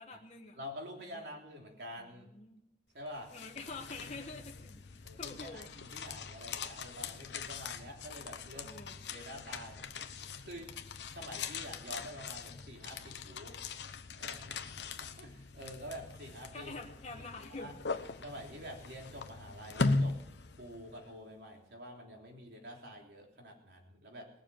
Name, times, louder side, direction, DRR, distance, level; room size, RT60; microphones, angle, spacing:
voice 1, 0.0-0.6 1.1-1.2 2.2-2.6 3.3-5.7 8.5-8.9 16.5-17.7, left 3 dB, 35° left, 0 dB, 1.2 m, -46 dB
voice 2, 0.5-2.3 2.9-3.3 5.0-8.8 9.1-9.8 10.4-10.7 11.1-13.6 14.1-16.7 17.1-17.7 18.2-20.2 20.6-24.3, equal, 70° right, 0 dB, 3.3 m, -47 dB
sound 1, 3.1-21.1, left 3 dB, 75° left, 0.9 m, -40 dB
19.5 x 7.1 x 7.6 m, 0.81 s
head